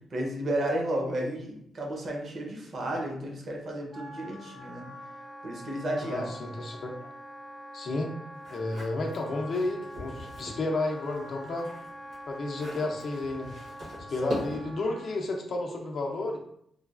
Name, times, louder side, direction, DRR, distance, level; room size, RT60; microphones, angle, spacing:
voice 1, 0.1-4.9 5.4-6.3, right 1 dB, 50° right, 0 dB, 0.7 m, -32 dB
Wind instrument woodwind instrument, 3.9-15.2, equal, 15° right, 0.5 m, -45 dB
voice 2, 6.0-7.1 7.7-8.2 8.5-11.7 12.3-13.5 14.1-16.4, left 2 dB, 55° left, 1 dB, 0.5 m, -32 dB
sound 1, 8.4-10.6 11.0-14.8, equal, 80° right, 1.3 m, -41 dB
3.1 x 2.2 x 2.4 m, 0.70 s
cardioid pair, 125°, 0 cm